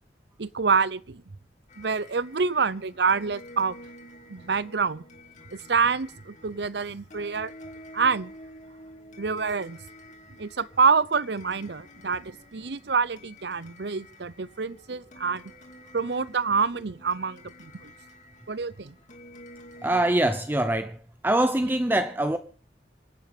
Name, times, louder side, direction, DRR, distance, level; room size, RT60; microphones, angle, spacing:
voice 1, 0.4-1.2 1.8-3.8 4.3-5.0 5.5-7.5 7.9-8.3 9.2-9.8 10.4-15.4 15.9-17.9 18.5-18.9, right 5 dB, 65° right, 0.7 m, -26 dB
sound 1, 1.7-20.1, left 1 dB, 40° left, 2.9 m, -49 dB
voice 2, 19.8-21.0 21.2-22.4, right 1 dB, 10° right, 0.7 m, -23 dB
26.5 x 9.2 x 5.1 m
head